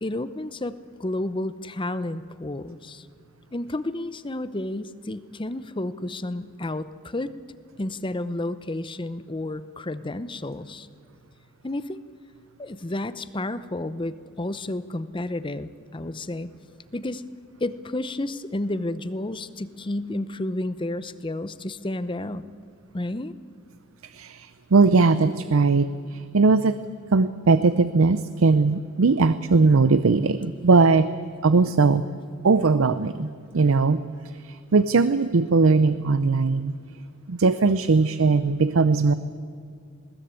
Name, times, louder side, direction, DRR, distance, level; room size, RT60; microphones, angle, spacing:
voice 1, 0.0-3.1 3.5-7.3 7.8-10.9 11.6-12.0 12.6-16.5 16.9-17.2 17.6-22.4 22.9-23.3, left 1 dB, 25° left, 14 dB, 0.7 m, -31 dB
voice 2, 24.0-26.8 27.1-31.1 31.4-32.0 32.4-33.3 33.5-36.7 37.3-39.1, right 4 dB, 85° right, 13 dB, 0.6 m, -20 dB
20.5 x 18.5 x 8.3 m, 2.3 s
head